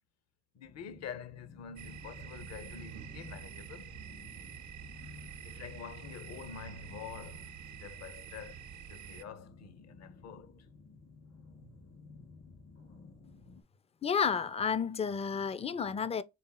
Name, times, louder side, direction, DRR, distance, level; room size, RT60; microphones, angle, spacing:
voice 1, 0.5-4.0 5.4-8.6 8.9-10.7, left 7 dB, 60° left, 0.7 m, -47 dB
sound 1, 0.6-13.6, left 4 dB, 75° left, 2.1 m, -54 dB
sound 2, 1.8-9.2, right 10 dB, 75° right, 0.6 m, -48 dB
voice 2, 14.0-16.2, left 6 dB, 20° left, 0.3 m, -31 dB
4.0 x 3.5 x 2.2 m
cardioid pair, 90°, 30 cm